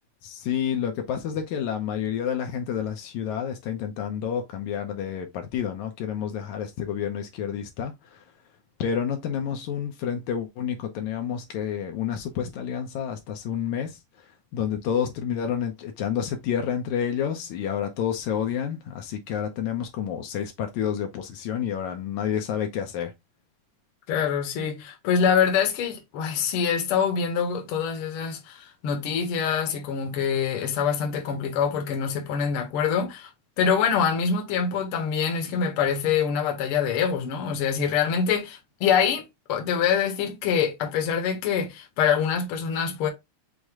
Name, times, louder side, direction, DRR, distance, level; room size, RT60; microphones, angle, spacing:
voice 1, 0.2-8.2 8.8-23.1, left 8 dB, 75° left, 2.0 m, -29 dB
voice 2, 24.1-33.3 33.6-43.1, left 7 dB, 60° left, 1.6 m, -25 dB
6.3 x 2.1 x 3.5 m
omnidirectional pair, 3.5 m